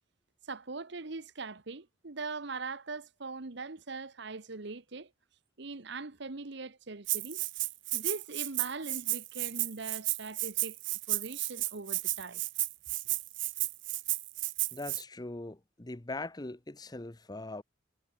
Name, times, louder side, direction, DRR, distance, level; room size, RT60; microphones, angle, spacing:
voice 1, 0.5-5.1 5.6-7.4 7.9-10.8 11.1-12.4, right 3 dB, 65° right, 1.2 m, -41 dB
Rattle (instrument), 7.1-15.0, right 18 dB, 85° right, 2.1 m, -33 dB
voice 2, 14.7-17.6, left 2 dB, 20° left, 0.9 m, -41 dB
head